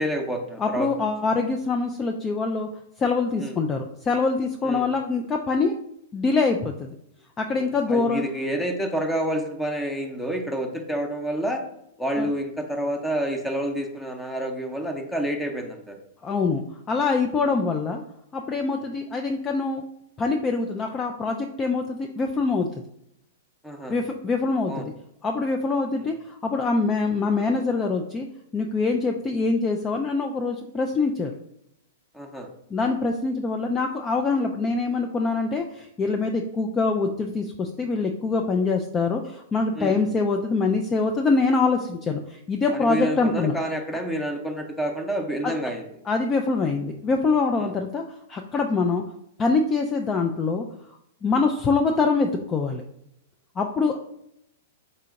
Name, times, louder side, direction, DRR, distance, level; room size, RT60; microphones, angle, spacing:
voice 1, 0.0-1.1 3.4-3.6 4.6-4.9 7.5-11.6 12.0-16.0 17.4-17.5 18.8-18.9 23.6-24.0 24.7-24.9 26.0-26.1 32.1-32.5 39.7-40.0 42.7-45.8 47.6-47.7 51.4-51.5, right 1 dB, 5° left, 3 dB, 0.8 m, -29 dB
voice 2, 0.6-2.7 3.0-5.7 6.1-6.9 7.4-8.2 12.2-12.3 16.2-18.0 18.3-19.8 20.2-22.7 23.9-24.9 25.2-28.3 28.5-31.3 32.7-43.6 45.4-45.5 46.1-48.0 48.3-49.0 49.4-50.7 51.2-52.8 53.6-54.0, left 4 dB, 20° left, 3 dB, 0.4 m, -24 dB
4.2 x 2.8 x 3.6 m, 0.76 s
hypercardioid pair, 110°, 0 cm